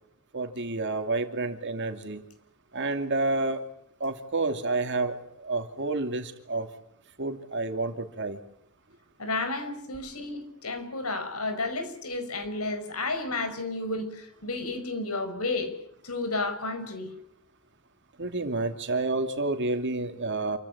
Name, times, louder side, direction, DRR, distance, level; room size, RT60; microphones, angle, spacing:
voice 1, 0.3-2.2 2.7-3.6 4.0-6.7 7.2-8.4 18.2-20.6, right 2 dB, 55° right, 6 dB, 2.6 m, -29 dB
voice 2, 9.2-15.7 16.0-17.1, left 3 dB, 90° left, 9 dB, 5.2 m, -32 dB
28.0 x 15.5 x 10.0 m, 0.74 s
head